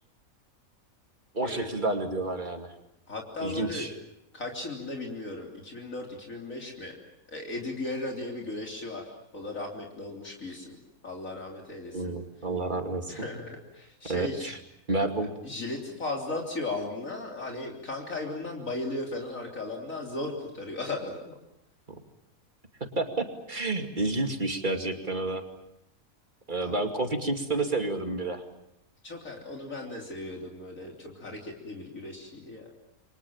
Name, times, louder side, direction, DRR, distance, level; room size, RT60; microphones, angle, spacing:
voice 1, 1.3-2.7 3.4-3.9 11.9-13.1 14.1-14.6 14.9-15.3 23.0-25.4 26.5-28.4, right 2 dB, 35° right, 5 dB, 2.7 m, -30 dB
voice 2, 3.1-3.9 4.3-7.0 7.3-10.8 11.0-12.1 13.1-14.5 15.4-21.4 26.6-26.8 29.0-32.7, left 2 dB, 65° left, 1 dB, 3.9 m, -36 dB
29.0 x 24.0 x 7.3 m, 0.80 s
omnidirectional pair, 1.5 m